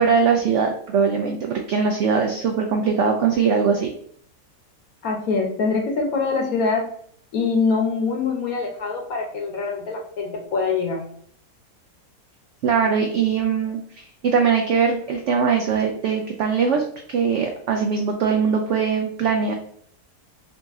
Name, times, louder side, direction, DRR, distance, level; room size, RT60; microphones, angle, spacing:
voice 1, 0.0-3.9 12.6-16.8 17.1-19.5, right 6 dB, 75° right, 3 dB, 0.6 m, -21 dB
voice 2, 5.0-6.9 7.3-11.0, left 4 dB, 65° left, 2 dB, 1.2 m, -24 dB
4.0 x 2.7 x 3.5 m, 0.62 s
omnidirectional pair, 1.8 m